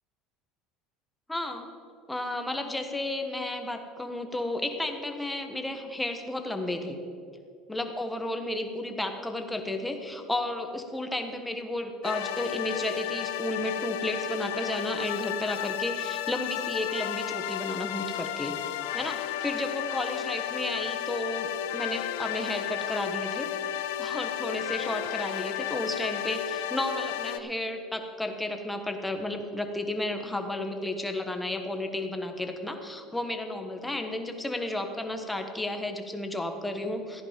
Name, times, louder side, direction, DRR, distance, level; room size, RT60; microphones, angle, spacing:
voice 1, 1.3-1.7 2.1-7.0 7.7-18.6 18.9-23.5 24.0-37.2, left 1 dB, 10° left, 5 dB, 1.4 m, -33 dB
sound 1, 12.0-27.4, left 11 dB, 85° left, 0.6 m, -33 dB
15.0 x 10.0 x 5.3 m, 2.5 s
supercardioid pair, 110°, 0 cm